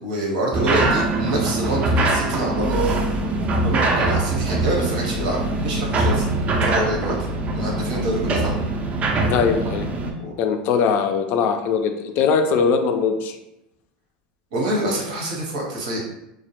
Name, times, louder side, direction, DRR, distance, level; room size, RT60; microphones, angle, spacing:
voice 1, 0.0-3.0 3.6-6.3 6.7-7.3 7.5-8.6 10.2-10.3 14.5-16.0, right 1 dB, 80° right, -2 dB, 0.8 m, -26 dB
sound 1, 0.5-10.1, right 2 dB, 30° right, 0.4 m, -22 dB
voice 2, 9.3-9.9 10.4-13.4, left 6 dB, 50° left, 6 dB, 0.3 m, -21 dB
2.1 x 2.1 x 2.9 m, 0.87 s
hypercardioid pair, 105°, 4 cm